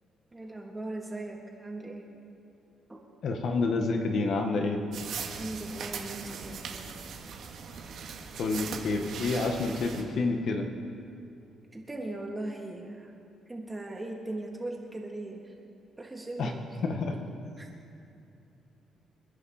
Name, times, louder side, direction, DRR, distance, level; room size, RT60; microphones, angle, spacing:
voice 1, 0.3-2.0 2.9-3.0 5.4-6.8 11.7-13.1 13.5-15.5 16.0-17.1 17.6-17.7, right 2 dB, 15° right, -1 dB, 3.1 m, -39 dB
voice 2, 3.2-4.8 8.4-10.7 16.4-16.5 16.8-17.2, left 3 dB, 65° left, 4 dB, 1.7 m, -28 dB
sound 1, 4.9-10.0, right 6 dB, 75° right, 2.1 m, -40 dB
29.5 x 10.5 x 4.4 m, 2.7 s
cardioid pair, 90°, 0 cm